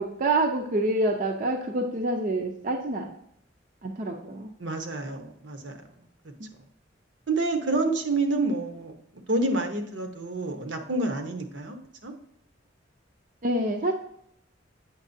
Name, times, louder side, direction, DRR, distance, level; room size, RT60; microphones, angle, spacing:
voice 1, 0.0-3.1 3.8-4.5 6.4-6.5 13.4-13.9, right 2 dB, 45° right, 2 dB, 0.6 m, -27 dB
voice 2, 4.6-5.8 7.3-9.0 9.3-11.8 12.0-12.1, right 2 dB, 70° right, 5 dB, 0.9 m, -28 dB
8.4 x 5.9 x 2.7 m, 0.72 s
head